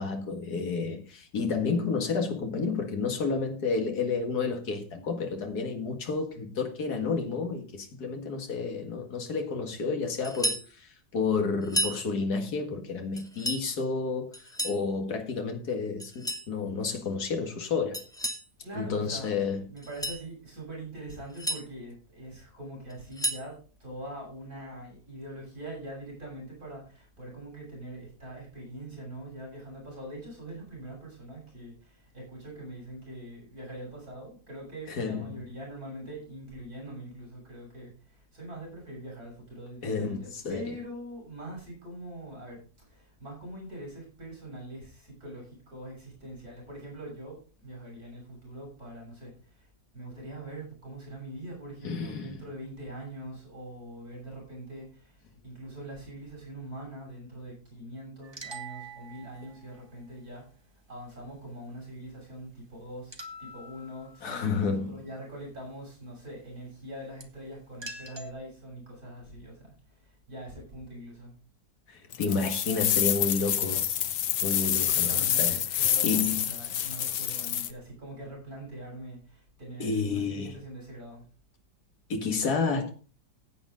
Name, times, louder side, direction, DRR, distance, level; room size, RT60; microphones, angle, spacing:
voice 1, 0.0-18.0 18.7-19.6 34.9-35.4 39.8-40.7 51.8-52.4 64.2-65.0 71.9-73.9 74.4-76.5 79.8-80.6 82.1-82.9, left 4 dB, 70° left, 2.3 m, -31 dB
sound 1, 10.2-10.7 11.6-12.0 13.2-13.7 14.3-14.8 16.0-16.5 17.9-18.5 19.8-20.2 21.1-21.6 22.9-23.5, equal, ahead, 1.3 m, -32 dB
voice 2, 18.6-19.4 19.7-49.7 49.9-60.5 60.9-71.3 74.8-81.3, right 1 dB, 60° right, 7.4 m, -43 dB
sound 2, 58.2-59.8 63.1-64.4 67.2-67.3 67.8-68.3, right 2 dB, 20° right, 1.1 m, -44 dB
sound 3, 72.1-77.7, left 10 dB, 90° left, 1.5 m, -27 dB
15.0 x 8.7 x 3.8 m
omnidirectional pair, 1.8 m